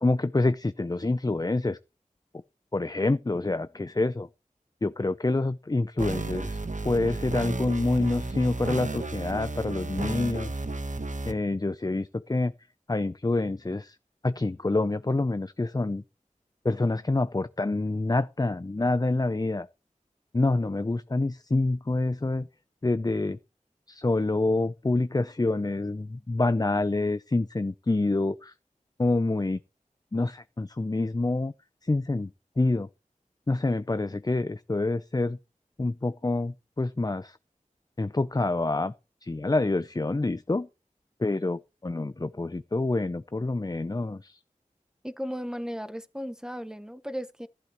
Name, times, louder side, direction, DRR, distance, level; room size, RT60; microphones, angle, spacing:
voice 1, 0.0-1.8 2.7-4.3 4.8-6.6 6.8-10.6 11.3-12.5 12.9-14.0 14.2-16.0 16.6-19.7 20.3-22.5 22.8-23.4 23.9-28.5 29.0-29.6 30.1-31.5 31.8-32.3 32.6-32.9 33.5-35.4 35.8-37.4 38.0-38.9 39.2-40.7 41.2-44.4, left 2 dB, 30° left, 0.5 m, -27 dB
sound 1, 6.0-11.3, right 2 dB, 70° right, 1.1 m, -33 dB
voice 2, 45.0-47.5, equal, 5° right, 0.9 m, -35 dB
13.5 x 11.5 x 3.0 m
wide cardioid pair, 45°, 14 cm